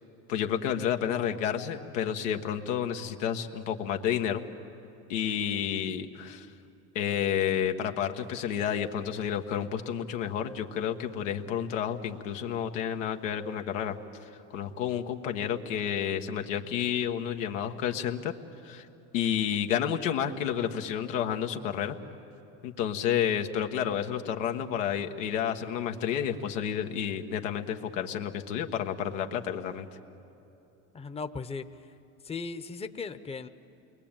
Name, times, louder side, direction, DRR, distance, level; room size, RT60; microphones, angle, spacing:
voice 1, 0.3-4.4 5.1-6.5 6.9-13.9 14.2-18.3 18.6-18.9 19.1-22.0 22.6-29.9, left 9 dB, 85° left, 5 dB, 1.5 m, -30 dB
voice 2, 30.9-31.7 32.2-33.5, left 4 dB, 15° left, 9 dB, 0.9 m, -37 dB
29.0 x 22.0 x 8.9 m, 2.9 s
supercardioid pair, 95°, 37 cm